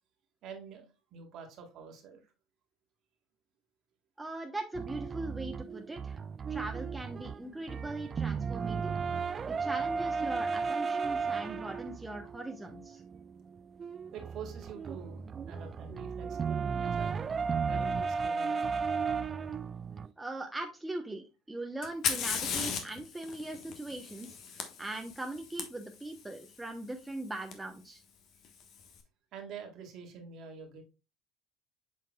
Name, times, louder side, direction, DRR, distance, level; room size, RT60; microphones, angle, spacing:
voice 1, 0.4-2.3 14.1-17.2 17.6-18.8 29.3-30.8, right 6 dB, 50° right, 4 dB, 1.8 m, -47 dB
voice 2, 4.2-6.2 6.5-8.9 9.5-13.0 20.2-28.0, right 2 dB, 10° right, 3 dB, 0.9 m, -40 dB
sound 1, 4.7-20.1, right 5 dB, 30° right, 0.4 m, -35 dB
Fire, 21.8-25.6 27.5-27.6 28.4-28.9, left 7 dB, 50° left, 1.2 m, -36 dB
7.5 x 5.7 x 2.3 m, 0.30 s
hypercardioid pair, 65°, 0 cm